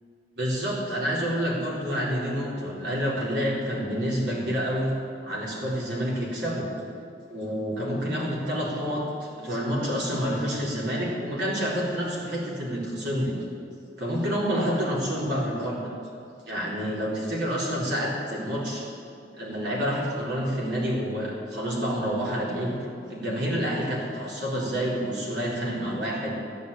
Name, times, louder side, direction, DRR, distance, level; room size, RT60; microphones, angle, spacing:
voice 1, 0.4-4.9 5.2-6.7 7.3-13.3 14.0-15.9 16.5-18.8 19.4-22.8 23.1-26.3, equal, 75° right, -5 dB, 4.3 m, -28 dB
15.0 x 9.4 x 8.7 m, 2.5 s
head